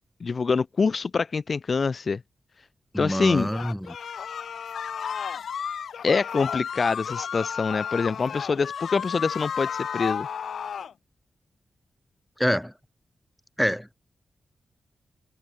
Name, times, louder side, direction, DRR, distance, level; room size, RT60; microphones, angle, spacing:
voice 1, 0.2-2.2 3.0-3.5 6.0-10.3, left 4 dB, 45° left, 0.4 m, -25 dB
voice 2, 2.9-4.0 12.4-12.7 13.6-13.9, equal, ahead, 0.7 m, -26 dB
sound 1, 3.5-10.9, left 7 dB, 80° left, 4.6 m, -33 dB
wide cardioid pair, 135°, 0 cm